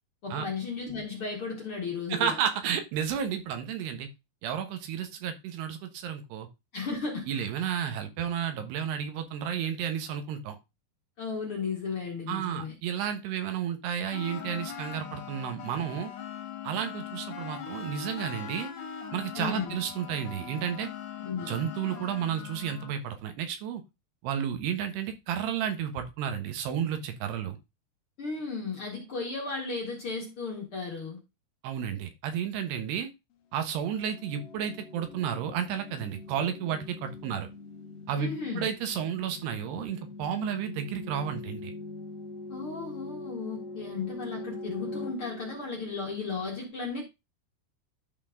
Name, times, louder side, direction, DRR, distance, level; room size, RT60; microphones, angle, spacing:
voice 1, 0.2-2.3 6.7-7.5 11.2-12.7 19.4-19.8 21.2-21.5 28.2-31.2 38.2-38.7 42.5-47.0, left 4 dB, 45° left, -1 dB, 2.0 m, -35 dB
voice 2, 2.1-4.1 4.4-6.5 7.3-10.6 12.3-16.1 16.6-18.7 19.1-20.9 21.5-23.8 24.2-27.6 31.6-33.1 33.5-37.5 38.1-41.7, right 8 dB, 80° right, 8 dB, 3.3 m, -32 dB
sound 1, 14.1-23.0, left 8 dB, 60° left, 2.7 m, -41 dB
sound 2, 33.6-46.4, left 3 dB, 90° left, 1.4 m, -43 dB
12.0 x 4.5 x 3.8 m, 0.24 s
omnidirectional pair, 4.8 m